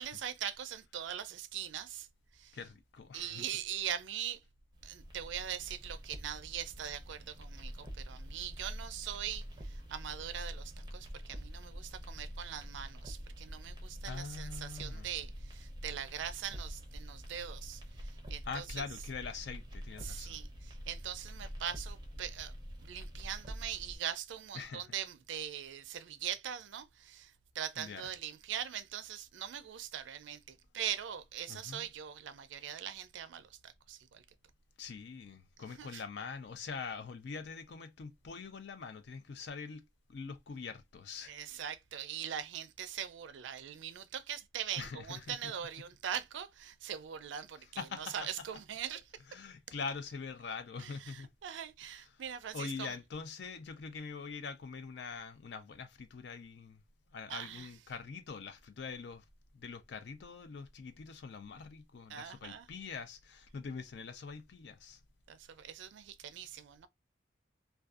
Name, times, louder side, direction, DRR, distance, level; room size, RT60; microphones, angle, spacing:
voice 1, 0.0-2.1 2.3-2.6 3.1-4.4 4.8-18.8 20.0-22.5 22.8-34.2 35.8-36.0 41.3-49.0 50.8-53.0 57.3-57.7 62.1-62.7 65.3-66.9, right 9 dB, 75° right, 0.4 m, -42 dB
voice 2, 2.5-3.4 14.1-15.1 18.5-20.4 24.5-24.8 27.8-28.1 31.5-31.8 34.8-41.3 44.8-45.5 47.8-48.3 48.9-49.0 49.3-51.3 51.9-52.2 52.5-56.8 57.1-59.2 59.5-65.0, left 5 dB, 60° left, 0.4 m, -44 dB
sound 1, 4.7-24.0, equal, 20° right, 0.6 m, -46 dB
2.5 x 2.3 x 2.3 m
head